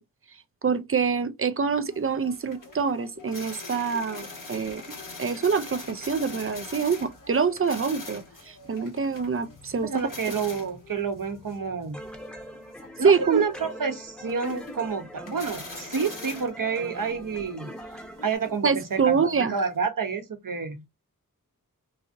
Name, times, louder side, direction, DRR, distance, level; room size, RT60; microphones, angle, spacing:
voice 1, 0.6-4.8 5.2-9.9 13.0-13.4 18.6-19.6, right 5 dB, 40° right, 0.4 m, -25 dB
sound 1, 1.9-19.8, left 3 dB, 60° left, 1.1 m, -44 dB
voice 2, 9.8-12.0 13.0-17.7 18.2-20.8, right 5 dB, 65° right, 0.9 m, -29 dB
sound 2, 11.9-18.4, equal, 5° left, 0.8 m, -43 dB
4.0 x 2.7 x 2.5 m
wide cardioid pair, 70°, 35 cm